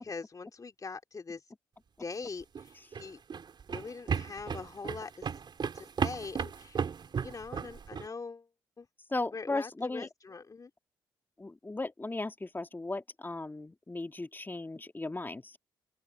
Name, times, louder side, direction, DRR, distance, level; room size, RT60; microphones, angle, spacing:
voice 1, 0.0-1.4 2.0-3.2 3.7-5.3 5.7-6.9 7.2-8.5 8.8-8.9 9.3-10.7, left 4 dB, 35° left, 2.8 m, -42 dB
sound 1, 2.4-8.1, right 6 dB, 50° right, 4.4 m, -35 dB
voice 2, 9.1-10.1 11.4-15.6, left 2 dB, 20° left, 3.5 m, -36 dB
open air
hypercardioid pair, 45°, 10 cm